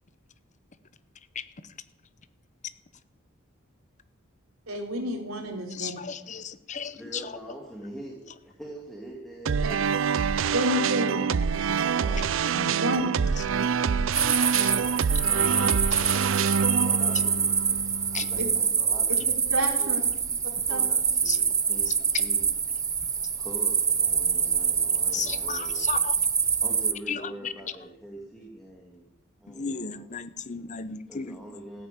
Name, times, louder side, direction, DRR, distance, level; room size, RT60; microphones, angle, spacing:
voice 1, 4.7-5.9 10.5-11.2 12.8-13.1 18.4-18.5 19.5-20.0 20.7-20.8, equal, 85° right, 0 dB, 3.9 m, -29 dB
voice 2, 5.7-7.4 12.5-12.8 14.6-14.7 18.1-18.3 21.3-21.4 21.9-22.0 25.1-26.2 27.1-27.5 29.5-31.4, left 6 dB, 35° left, 13 dB, 0.8 m, -34 dB
voice 3, 6.9-10.3 12.0-12.3 14.5-22.5 23.4-26.1 26.6-29.1 29.4-30.1 31.1-31.9, right 1 dB, ahead, -1 dB, 2.0 m, -44 dB
sound 1, 9.5-18.6, right 6 dB, 65° right, 0.4 m, -26 dB
sound 2, 14.1-26.9, right 6 dB, 15° right, 0.6 m, -25 dB
14.5 x 10.0 x 8.8 m, 0.93 s
head